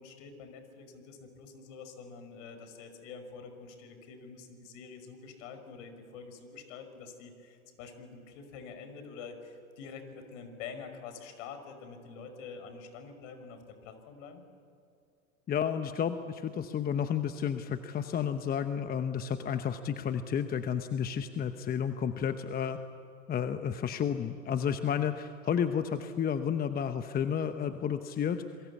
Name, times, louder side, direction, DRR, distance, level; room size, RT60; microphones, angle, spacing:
voice 1, 0.0-14.4, left 5 dB, 55° left, 8 dB, 5.6 m, -46 dB
voice 2, 15.5-22.8 23.3-28.4, left 8 dB, 20° left, 9 dB, 1.0 m, -31 dB
27.5 x 23.0 x 8.4 m, 2.5 s
hypercardioid pair, 105°, 44 cm